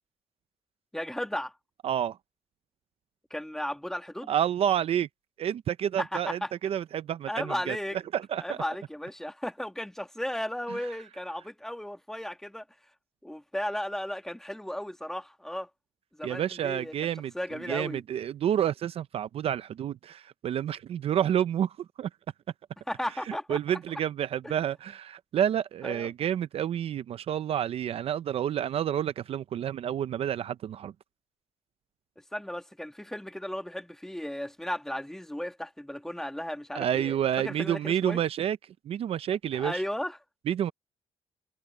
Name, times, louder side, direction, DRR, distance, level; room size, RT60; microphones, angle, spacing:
voice 1, 0.9-1.6 3.3-4.3 6.0-6.5 7.3-8.0 8.4-12.6 13.2-15.7 16.2-16.9 17.3-18.0 22.9-23.8 24.4-24.6 25.8-26.1 32.3-38.2 39.5-40.2, left 1 dB, 5° left, 1.6 m, -35 dB
voice 2, 1.8-2.2 4.3-5.1 5.4-7.8 8.1-8.6 16.2-17.3 17.7-22.1 23.3-30.9 36.7-38.6 38.9-39.8 40.5-40.7, right 10 dB, 55° right, 0.5 m, -29 dB
cardioid pair, 145°, 12 cm